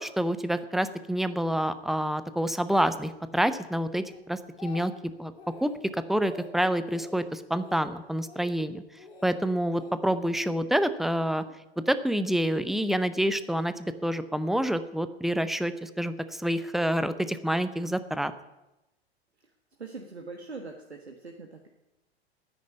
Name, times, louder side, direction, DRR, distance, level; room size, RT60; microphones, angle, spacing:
voice 1, 0.0-4.9 5.2-5.3 5.6-8.8 9.2-11.4 11.8-18.3, equal, ahead, 13 dB, 0.6 m, -28 dB
Speech, 4.1-5.1 5.4-5.8 6.1-6.5 6.9-7.2 7.6-7.9 8.2-8.6 9.0-9.3 9.7-10.5 11.3-11.6, left 4 dB, 70° left, 3.7 m, -47 dB
voice 2, 19.8-21.7, right 3 dB, 85° right, 3 dB, 1.5 m, -42 dB
10.0 x 9.4 x 9.7 m, 0.98 s
figure-of-eight pair, 90°, 32 cm